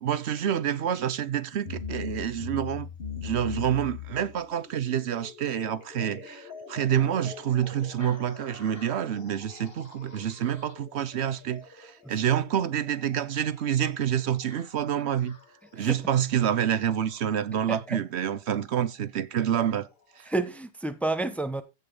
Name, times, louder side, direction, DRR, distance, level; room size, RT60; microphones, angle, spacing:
voice 1, 0.0-2.9 3.2-15.4 15.7-19.9 20.2-20.3, right 9 dB, 75° right, 1.0 m, -28 dB
sound 1, 1.5-17.4 18.6-18.7 19.5-19.6 20.3-20.4, left 6 dB, 60° left, 1.9 m, -43 dB
voice 2, 17.7-18.0 20.3-21.6, right 2 dB, ahead, 0.8 m, -30 dB
15.0 x 5.5 x 3.9 m
omnidirectional pair, 1.1 m